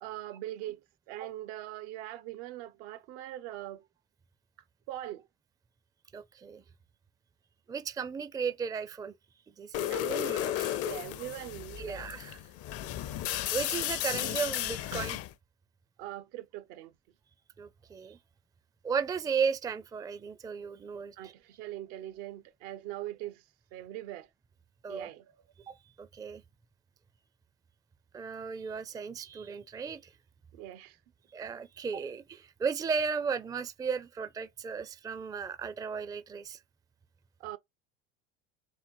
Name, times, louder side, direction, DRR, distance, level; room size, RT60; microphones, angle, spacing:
voice 1, 0.0-3.9 4.9-5.3 9.9-10.3 10.8-12.0 16.0-16.9 21.2-24.3 24.9-25.4 30.5-31.0 37.4-37.6, right 14 dB, 75° right, 0.7 m, -42 dB
voice 2, 6.1-6.6 7.7-9.1 9.6-10.8 11.8-12.4 13.5-15.2 17.6-18.2 18.8-21.3 24.8-25.1 25.7-26.4 28.1-30.1 31.3-36.6, right 6 dB, 10° right, 0.4 m, -35 dB
sound 1, 9.7-15.3, left 13 dB, 50° left, 0.5 m, -34 dB
4.1 x 2.4 x 4.4 m
supercardioid pair, 95°, 33 cm